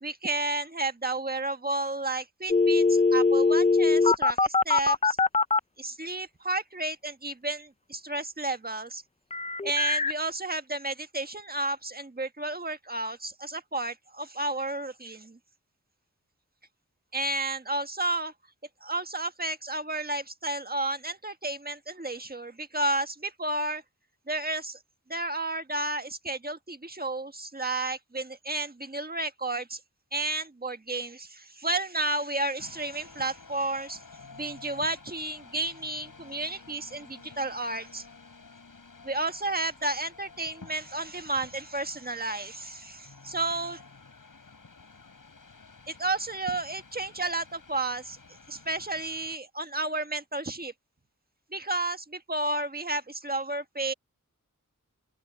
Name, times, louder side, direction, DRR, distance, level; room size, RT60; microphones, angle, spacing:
voice 1, 0.0-5.2 5.8-9.0 9.6-15.4 17.1-18.3 18.8-23.8 24.3-24.8 25.1-29.8 30.1-34.0 34.3-38.1 39.0-43.8 45.9-48.2 48.5-50.7 51.5-53.9, right 2 dB, 30° right, 1.6 m, -32 dB
sound 1, 2.5-5.6 9.3-10.1, left 3 dB, 20° left, 0.4 m, -22 dB
sound 2, 32.6-49.4, left 4 dB, 80° left, 8.0 m, -51 dB
open air
wide cardioid pair, 60°, 32 cm